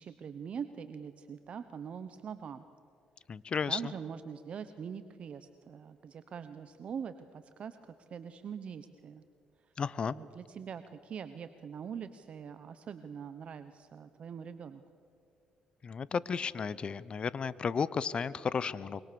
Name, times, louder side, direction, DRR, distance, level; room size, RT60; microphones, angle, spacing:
voice 1, 0.0-2.7 3.7-7.8 8.1-9.2 10.1-14.8, right 7 dB, 55° right, 10 dB, 1.0 m, -43 dB
voice 2, 3.3-3.9 9.8-10.1 15.8-19.0, left 6 dB, 45° left, 18 dB, 0.8 m, -33 dB
25.0 x 24.0 x 7.0 m, 2.4 s
cardioid pair, 85°, 2 cm